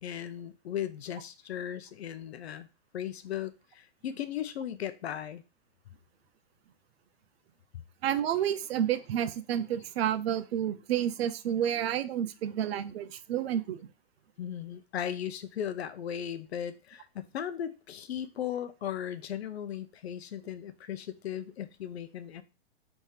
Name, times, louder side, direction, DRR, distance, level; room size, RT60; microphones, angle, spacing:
voice 1, 0.0-2.7 2.9-5.4 14.4-22.4, left 9 dB, 85° left, 12 dB, 0.6 m, -37 dB
voice 2, 8.0-13.8, right 10 dB, 75° right, 13 dB, 0.6 m, -30 dB
3.5 x 2.8 x 4.7 m, 0.30 s
hypercardioid pair, 140°, 31 cm